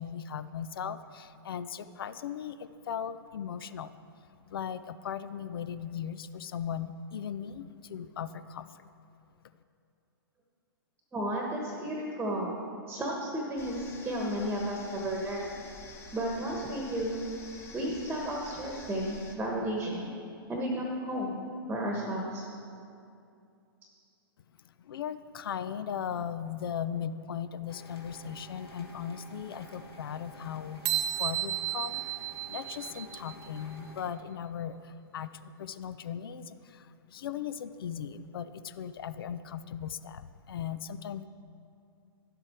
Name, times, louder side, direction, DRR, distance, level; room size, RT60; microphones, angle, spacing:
voice 1, 0.0-4.0 4.5-8.9 24.6-32.0 32.5-41.3, left 8 dB, 70° left, 14 dB, 0.5 m, -38 dB
voice 2, 11.1-15.5 16.1-17.2 17.7-20.1 20.5-21.4 21.7-22.5, right 1 dB, 10° right, -1 dB, 1.2 m, -33 dB
sound 1, 13.6-19.4, left 2 dB, 20° left, 1.1 m, -48 dB
sound 2, 27.7-34.0, equal, 85° left, 1.6 m, -50 dB
sound 3, 30.9-33.5, right 12 dB, 55° right, 0.9 m, -33 dB
11.0 x 7.9 x 4.4 m, 2.5 s
hypercardioid pair, 120°, 13 cm